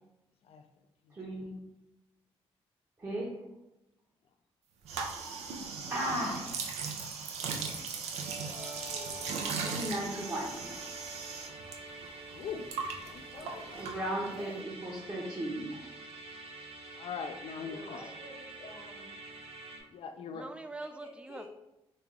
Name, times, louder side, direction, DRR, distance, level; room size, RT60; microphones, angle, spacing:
voice 1, 1.1-1.5 3.0-3.3 5.9-6.5 9.5-10.9 13.8-15.9, right 1 dB, 25° right, -6 dB, 0.8 m, -36 dB
sound 1, 4.8-11.8 12.0-14.4, right 5 dB, 90° right, 0.4 m, -38 dB
Musical instrument, 8.1-19.8, right 2 dB, 70° right, 0.8 m, -47 dB
voice 2, 8.4-9.8 13.4-13.7 17.6-18.0 20.3-21.5, right 2 dB, 10° right, 8 dB, 0.3 m, -47 dB
voice 3, 12.3-12.7 13.1-13.2 17.0-18.0 19.9-20.5, left 6 dB, 65° left, 8 dB, 0.4 m, -40 dB
voice 4, 13.3-14.6 17.6-19.1 20.7-21.5, left 2 dB, 90° left, -11 dB, 1.3 m, -48 dB
3.1 x 2.3 x 3.6 m, 0.92 s
cardioid pair, 65°, 11 cm